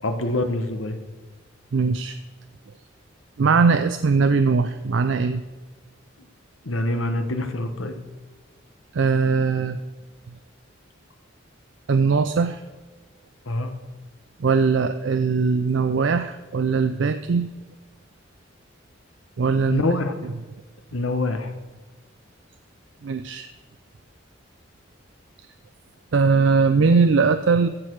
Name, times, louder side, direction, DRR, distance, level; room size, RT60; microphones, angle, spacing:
voice 1, 0.0-1.0 6.6-8.0 13.5-13.7 19.7-20.1 20.9-21.5, left 2 dB, 85° left, 7 dB, 1.2 m, -25 dB
voice 2, 1.7-2.2 3.4-5.4 8.9-9.8 11.9-12.6 14.4-17.5 19.4-19.8 23.0-23.5 26.1-27.7, right 4 dB, 65° right, 10 dB, 0.4 m, -20 dB
15.0 x 6.6 x 4.6 m, 1.3 s
head